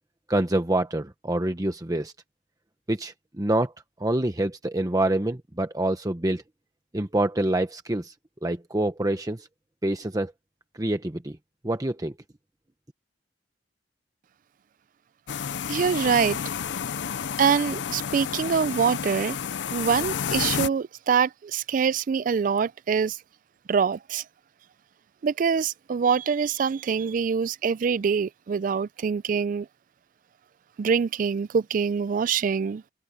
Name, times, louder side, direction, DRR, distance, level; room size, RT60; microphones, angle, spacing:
voice 1, 0.3-2.1 2.9-3.7 4.0-6.4 6.9-8.1 8.4-9.5 9.8-10.3 10.8-11.4 11.6-12.1, right 1 dB, 20° right, 0.9 m, -26 dB
sound 1, 15.3-20.7, left 7 dB, 80° left, 0.5 m, -30 dB
voice 2, 15.7-16.4 17.4-19.4 19.7-23.2 23.7-24.2 25.2-29.7 30.8-32.8, right 6 dB, 50° right, 0.3 m, -24 dB
head